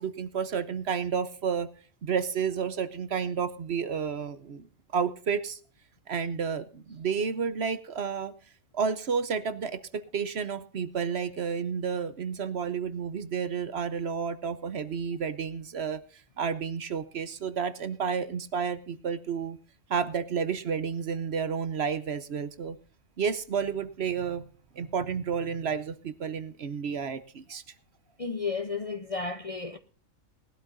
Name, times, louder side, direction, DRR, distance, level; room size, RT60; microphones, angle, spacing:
voice 1, 0.0-1.7 2.0-4.7 4.9-5.6 6.1-8.3 8.7-16.0 16.4-19.6 19.9-22.8 23.2-24.4 24.8-27.6, right 6 dB, 55° right, 1.0 m, -31 dB
voice 2, 28.2-29.8, left 4 dB, 35° left, 0.6 m, -33 dB
19.5 x 12.0 x 2.6 m
omnidirectional pair, 1.4 m